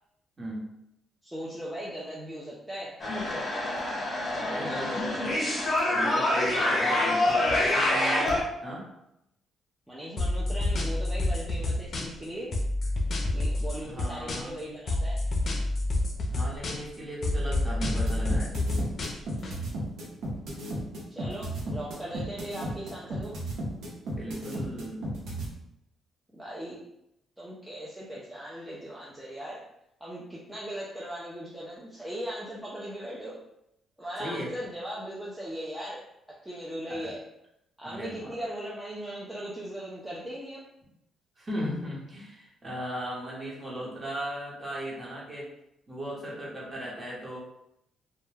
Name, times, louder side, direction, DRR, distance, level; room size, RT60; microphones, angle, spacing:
voice 1, 0.4-0.7 4.4-5.2 5.9-8.9 13.8-14.5 16.3-18.5 24.1-25.0 34.2-34.5 36.9-37.1 37.8-38.4 41.4-45.5 45.9-47.4, right 1 dB, 25° right, -4 dB, 1.0 m, -37 dB
voice 2, 1.2-3.0 4.3-5.3 6.9-7.9 9.9-12.6 13.3-15.3 21.1-23.4 26.3-26.8 27.4-29.6 30.0-33.4 34.0-37.2 37.8-40.6, equal, 5° right, -6 dB, 0.5 m, -39 dB
sound 1, 3.0-8.4, left 1 dB, 30° left, 0.9 m, -26 dB
sound 2, 10.2-12.2 12.5-14.6 14.9-17.0 17.2-19.5, left 2 dB, 50° left, 0.5 m, -28 dB
sound 3, 17.8-25.5, right 1 dB, 75° right, 0.7 m, -34 dB
2.2 x 2.1 x 3.2 m, 0.81 s
cardioid pair, 90°, 0 cm